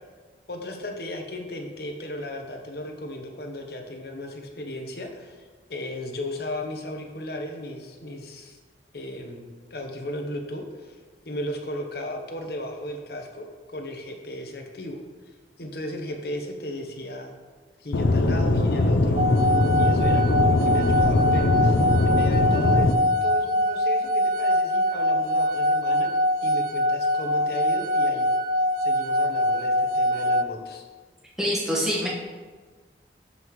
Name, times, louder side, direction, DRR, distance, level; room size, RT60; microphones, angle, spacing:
voice 1, 0.5-5.4 5.7-8.6 8.9-11.0 11.2-15.0 15.6-17.3 17.8-19.5 19.8-22.9 23.2-26.1 26.4-28.3 28.8-30.8, left 1 dB, 60° left, 3 dB, 1.0 m, -35 dB
Aircraft / Engine, 17.9-22.9, left 2 dB, 90° left, 0.6 m, -21 dB
sound 1, 19.2-30.4, left 1 dB, 50° right, 0.3 m, -23 dB
voice 2, 31.4-32.1, equal, 5° right, -5 dB, 1.4 m, -25 dB
11.5 x 5.5 x 3.2 m, 1.4 s
head